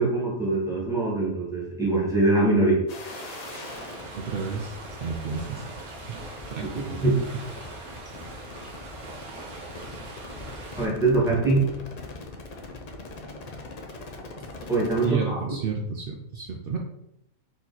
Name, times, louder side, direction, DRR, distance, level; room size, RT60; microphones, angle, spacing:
voice 1, 0.0-2.8 6.6-7.2 10.8-11.6 14.7-15.4, right 2 dB, ahead, -4 dB, 1.3 m, -23 dB
sound 1, 2.9-15.1, left 3 dB, 75° left, 0.3 m, -42 dB
sound 2, 3.0-10.9, right 3 dB, 90° right, 1.5 m, -42 dB
voice 2, 4.1-5.6 6.5-6.7 15.0-16.8, right 5 dB, 70° right, 0 dB, 0.5 m, -31 dB
4.3 x 2.9 x 4.0 m, 0.80 s
omnidirectional pair, 1.5 m